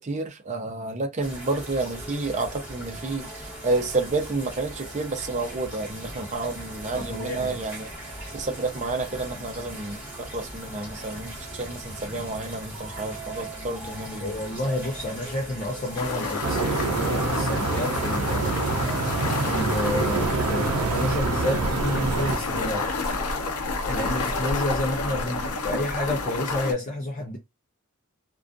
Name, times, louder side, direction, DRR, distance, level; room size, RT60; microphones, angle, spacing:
voice 1, 0.0-7.9 8.3-14.3, right 3 dB, 30° right, 0.5 m, -30 dB
sound 1, 1.2-21.2, right 1 dB, 10° right, 1.1 m, -39 dB
voice 2, 6.9-7.6 14.2-18.6 19.5-22.9 23.9-27.4, left 1 dB, 35° left, 0.5 m, -30 dB
sound 2, 16.0-26.7, left 3 dB, 85° left, 0.6 m, -29 dB
sound 3, 16.4-22.4, right 4 dB, 90° right, 0.5 m, -26 dB
2.4 x 2.2 x 2.5 m
head